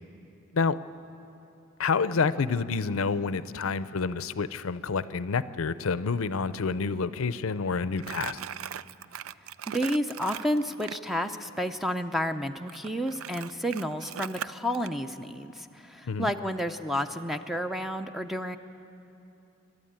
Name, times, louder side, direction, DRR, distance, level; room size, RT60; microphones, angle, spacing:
voice 1, 1.8-8.4 16.1-16.3, left 5 dB, 75° left, 15 dB, 0.5 m, -28 dB
Crumpling crinkling, 8.0-11.0 12.7-14.9, right 9 dB, 75° right, 0.4 m, -39 dB
voice 2, 9.7-18.6, equal, ahead, 7 dB, 0.5 m, -31 dB
27.5 x 12.0 x 8.9 m, 2.8 s
head